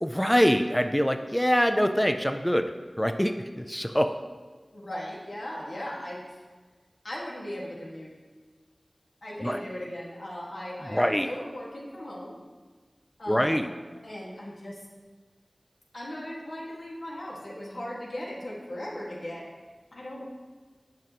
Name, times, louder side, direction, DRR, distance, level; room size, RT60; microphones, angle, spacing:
voice 1, 0.0-2.7 3.0-4.2 9.4-9.6 10.9-11.3 13.3-13.7, equal, 5° left, 7 dB, 0.4 m, -24 dB
voice 2, 4.7-6.4 7.0-8.1 9.2-12.4 13.2-13.8 14.0-14.8 15.9-19.5 19.9-20.3, left 1 dB, 75° left, -4 dB, 1.8 m, -38 dB
10.5 x 6.1 x 3.0 m, 1.4 s
wide cardioid pair, 60°, 0 cm